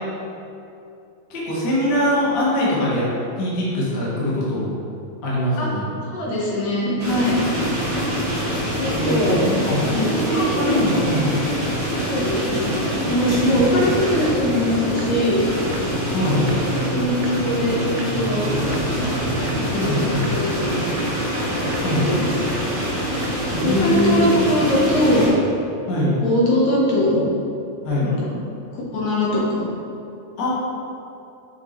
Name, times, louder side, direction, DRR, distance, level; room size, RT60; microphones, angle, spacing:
voice 1, 1.3-3.1 3.4-4.7 5.2-5.8 8.9-11.3 16.1-16.4 19.7-20.3 21.8-22.1 23.5-24.5 25.9-26.1 27.8-28.1 30.4-30.5, left 1 dB, 50° left, -6 dB, 1.3 m, -22 dB
voice 2, 6.1-7.4 8.7-9.4 9.8-10.8 12.0-15.4 16.6-18.5 19.5-20.9 21.7-22.7 23.6-25.3 26.2-27.2 28.0-28.4 28.7-29.7, left 1 dB, 75° left, -5 dB, 2.4 m, -22 dB
sound 1, 7.0-25.3, equal, 30° right, 0.9 m, -25 dB
sound 2, 14.2-14.3 14.6-14.7 15.0-15.1 15.4-15.5 15.7-15.8 16.1-16.2 16.5-16.6 16.9-17.0 17.2-17.3 17.6-17.7 18.0-18.1 18.4-18.5 18.7-18.8 19.1-19.2 19.5-19.6 19.9-20.0 20.2-20.3 20.6-20.7 21.0-21.1 21.4-21.5 21.7-21.8 22.1-22.2 22.5-22.6 22.9-23.0 23.2-23.3 23.6-23.7 24.0-24.1, right 8 dB, 85° right, 1.9 m, -38 dB
5.7 x 5.3 x 3.1 m, 2.7 s
omnidirectional pair, 3.3 m